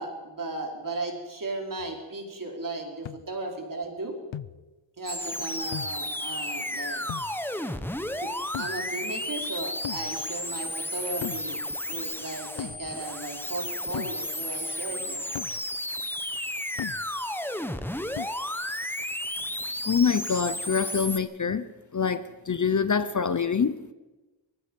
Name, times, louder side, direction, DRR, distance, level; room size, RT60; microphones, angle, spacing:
voice 1, 0.0-4.1 5.0-7.0 8.2-8.3 8.6-11.6 11.9-15.3, right 2 dB, 45° right, 4.4 m, -36 dB
sound 1, 1.8-1.9 3.1-3.3 4.3-4.7 5.7-6.1 7.1-7.4 8.5-8.9 9.8-10.2 11.2-11.5 12.6-12.9 13.9-14.2 15.4-15.6 16.8-17.1 18.2-18.3, left 11 dB, 70° left, 0.6 m, -37 dB
sound 2, 5.1-21.2, left 1 dB, 5° left, 1.2 m, -33 dB
voice 2, 19.8-23.9, left 6 dB, 40° left, 0.8 m, -26 dB
24.0 x 19.5 x 5.4 m
wide cardioid pair, 105°, 47 cm